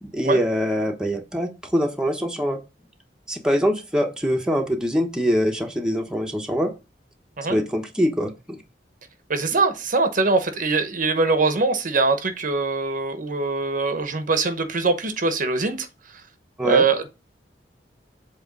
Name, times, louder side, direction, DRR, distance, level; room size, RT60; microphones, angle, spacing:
voice 1, 0.0-2.6 3.3-6.7 7.5-8.6 16.6-16.8, equal, 5° right, 1.0 m, -23 dB
voice 2, 9.3-15.9 16.6-17.1, right 3 dB, 50° right, 0.9 m, -22 dB
7.7 x 3.1 x 5.3 m
head